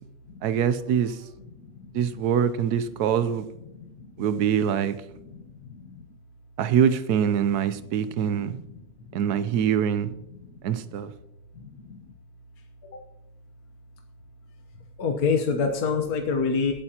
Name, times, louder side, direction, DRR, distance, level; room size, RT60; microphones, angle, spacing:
voice 1, 0.4-1.2 1.9-3.4 4.2-5.0 6.6-8.6 9.1-10.1 10.6-11.1, right 8 dB, 90° right, 1.3 m, -24 dB
voice 2, 15.0-16.7, left 5 dB, 75° left, 1.5 m, -25 dB
20.0 x 8.9 x 2.9 m
omnidirectional pair, 1.6 m